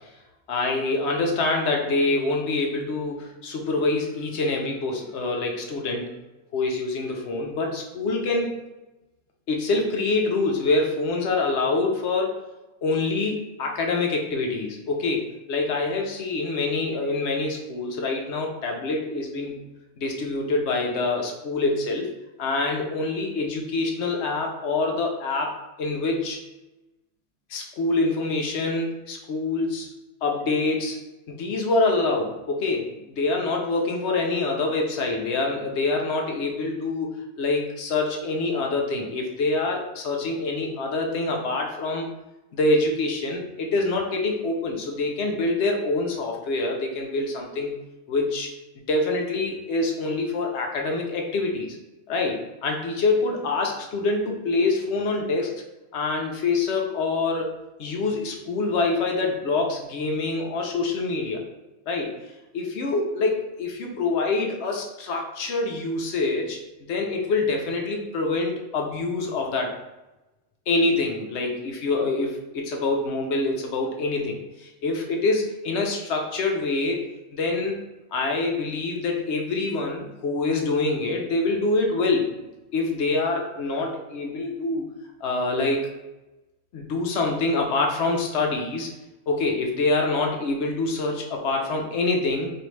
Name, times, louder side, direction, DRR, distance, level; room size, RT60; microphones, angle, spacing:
voice 1, 0.5-6.1 6.5-8.5 9.5-12.4 12.8-19.6 20.0-22.1 22.4-26.4 27.5-29.9 30.2-31.0 31.3-42.1 42.5-47.8 48.1-48.5 48.9-51.8 52.1-55.6 55.9-57.5 57.8-61.4 61.9-62.2 62.5-69.7 70.7-77.0 77.3-77.8 78.1-82.3 82.7-84.9 85.2-85.9 86.7-88.9 89.3-92.5, left 3 dB, 70° left, 1 dB, 0.9 m, -25 dB
4.4 x 2.5 x 3.1 m, 1.0 s
omnidirectional pair, 1.3 m